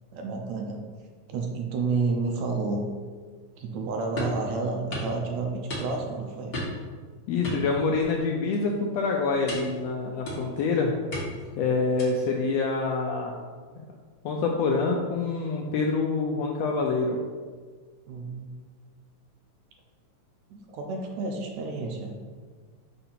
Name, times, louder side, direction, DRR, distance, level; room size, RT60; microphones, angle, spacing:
voice 1, 0.1-0.8 1.3-2.8 3.6-6.6 18.1-18.5 20.5-22.1, right 4 dB, 75° right, 1 dB, 2.0 m, -30 dB
sound 1, 4.2-4.4 4.9-5.1 5.7-6.1 6.5-6.9 7.4-8.2 8.5-8.8 9.5-9.8 10.2-10.6 11.1-11.5 12.0-12.3, left 1 dB, 55° left, 0.6 m, -34 dB
voice 2, 7.3-11.0 11.6-13.4 13.8-13.9 14.2-17.2, left 4 dB, 80° left, 0 dB, 1.5 m, -26 dB
6.6 x 2.7 x 5.7 m, 1.5 s
omnidirectional pair, 3.4 m